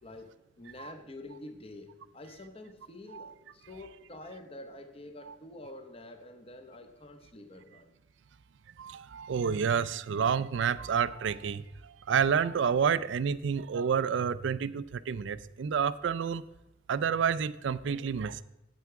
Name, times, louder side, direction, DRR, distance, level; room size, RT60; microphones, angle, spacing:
voice 1, 0.0-7.9, left 2 dB, 30° left, 6 dB, 0.8 m, -47 dB
voice 2, 8.8-16.4 16.9-18.4, right 7 dB, 70° right, 17 dB, 0.4 m, -29 dB
8.5 x 8.0 x 4.6 m, 0.96 s
head